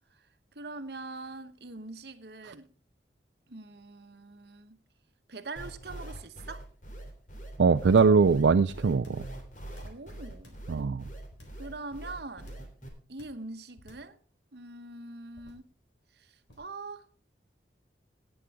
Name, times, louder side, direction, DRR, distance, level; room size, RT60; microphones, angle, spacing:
voice 1, 0.5-2.7 3.5-4.8 5.3-6.7 9.8-10.6 11.6-12.5 13.1-14.2 14.5-15.6 16.1-17.1, right 3 dB, 65° right, 1.1 m, -43 dB
sound 1, 5.6-12.9, right 1 dB, 45° left, 3.1 m, -43 dB
voice 2, 7.6-9.2 10.7-11.0, right 5 dB, 85° right, 0.4 m, -22 dB
sound 2, 8.0-8.3 8.9-9.3 9.7-10.7 11.3-11.7 12.4-12.8 13.2-13.5 13.8-14.2 15.3-15.7 16.5-16.8, left 1 dB, 90° left, 4.0 m, -53 dB
18.0 x 8.2 x 3.6 m
head